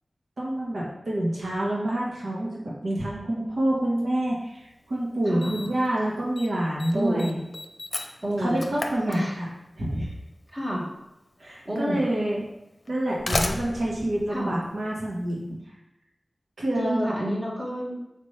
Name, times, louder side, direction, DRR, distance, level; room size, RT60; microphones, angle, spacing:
voice 1, 0.4-7.4 8.4-9.5 9.8-10.1 11.4-12.4 12.9-15.6 16.6-17.1, right 1 dB, 85° right, -4 dB, 1.5 m, -27 dB
Slam, 4.6-4.7 5.4-5.9 6.1-6.5 6.8-9.7 10.8-10.9 11.8-11.9 12.9-15.2, left 2 dB, 50° left, 0.7 m, -33 dB
voice 2, 6.9-7.2 8.2-8.7 9.1-9.3 10.5-10.8 11.7-12.0 14.3-14.5 16.8-18.0, equal, 30° right, -4 dB, 2.2 m, -29 dB
7.3 x 5.6 x 3.3 m, 0.89 s
wide cardioid pair, 70°, 0 cm